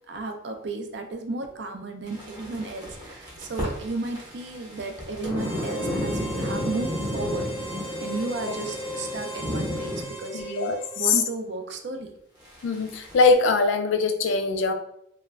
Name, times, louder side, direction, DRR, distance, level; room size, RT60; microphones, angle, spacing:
voice 1, 0.1-7.5 8.0-12.1, right 3 dB, 65° right, 5 dB, 0.4 m, -33 dB
sound 1, 2.1-10.0 12.4-13.3, left 1 dB, 25° right, 0.7 m, -33 dB
Harmonica, 5.3-11.3, equal, 25° left, 0.5 m, -36 dB
voice 2, 10.3-11.2 12.6-14.7, left 4 dB, 85° left, 7 dB, 0.4 m, -22 dB
2.4 x 2.1 x 3.1 m, 0.75 s
head